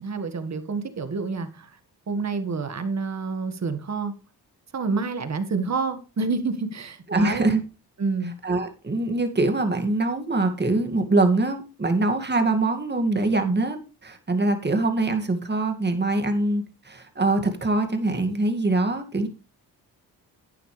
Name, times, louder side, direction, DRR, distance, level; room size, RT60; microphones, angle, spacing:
voice 1, 0.0-1.7 2.1-4.1 4.7-7.4 8.0-8.3, right 4 dB, 45° right, 1.8 m, -28 dB
voice 2, 7.1-7.6 8.4-19.3, right 2 dB, 25° right, 2.2 m, -23 dB
11.5 x 9.1 x 3.3 m
cardioid pair, 70°, 39 cm